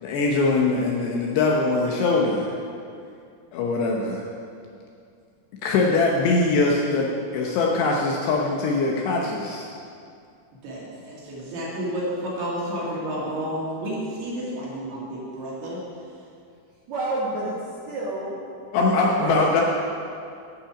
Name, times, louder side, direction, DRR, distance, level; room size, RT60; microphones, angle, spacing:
voice 1, 0.0-2.6 3.5-4.2 5.6-9.7 18.7-19.6, left 3 dB, 75° left, -1 dB, 2.6 m, -22 dB
voice 2, 10.6-15.8, equal, 60° right, -6 dB, 3.9 m, -31 dB
voice 3, 16.9-17.5 17.9-18.5 18.8-19.6, right 2 dB, 90° right, -7 dB, 1.5 m, -29 dB
11.5 x 8.8 x 4.9 m, 2.4 s
omnidirectional pair, 5.7 m